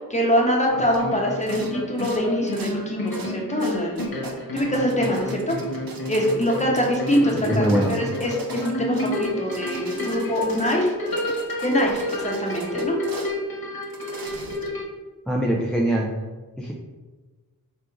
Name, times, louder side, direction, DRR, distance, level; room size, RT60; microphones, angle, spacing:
voice 1, 0.0-5.6 6.1-10.9 11.6-13.0, equal, 20° left, -2 dB, 0.9 m, -24 dB
sound 1, 0.7-14.8, left 1 dB, 80° left, 1.1 m, -30 dB
sound 2, 0.9-1.0 1.4-1.7 2.0-2.7 3.1-3.3 3.6-13.3 13.8-14.8, right 3 dB, 75° right, 0.6 m, -40 dB
voice 2, 7.4-7.9 15.3-16.1 16.6-16.7, equal, ahead, -3 dB, 0.4 m, -22 dB
3.5 x 2.5 x 4.6 m, 1.3 s
wide cardioid pair, 90°, 35 cm